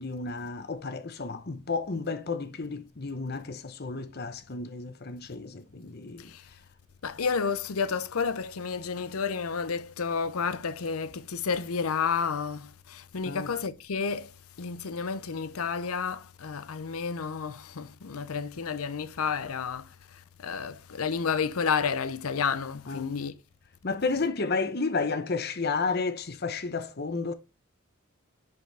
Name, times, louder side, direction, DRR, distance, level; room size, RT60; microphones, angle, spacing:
voice 1, 0.0-6.3 13.2-13.5 22.9-23.1 23.8-27.3, left 4 dB, 50° left, 0.9 m, -32 dB
voice 2, 7.0-14.3 14.6-23.3, left 5 dB, 90° left, 0.7 m, -31 dB
10.5 x 4.7 x 3.4 m
head